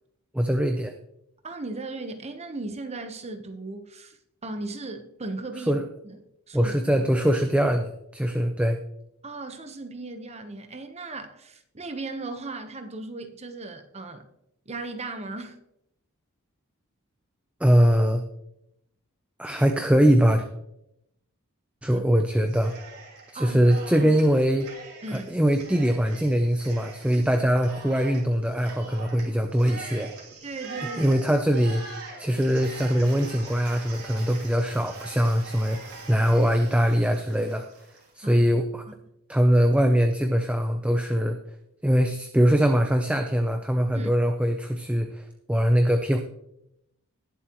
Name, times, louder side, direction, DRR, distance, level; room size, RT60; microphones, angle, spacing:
voice 1, 0.3-0.9 5.7-5.8 6.5-8.8 17.6-18.2 19.4-20.5 21.8-22.7 23.3-24.7 25.1-30.1 31.0-31.8 32.2-37.7 38.1-38.8 39.3-41.4 41.8-46.2, equal, 5° right, 0.6 m, -22 dB
voice 2, 1.4-6.2 6.5-6.8 9.2-14.3 14.7-15.6 21.9-22.1 23.3-23.6 24.0-24.1 25.0-25.3 30.4-31.0 38.2-38.5 43.9-44.1, right 2 dB, 30° right, 1.1 m, -37 dB
Cheering, 22.5-23.3 23.6-38.1, right 3 dB, 80° right, 3.0 m, -43 dB
19.5 x 7.5 x 3.1 m
head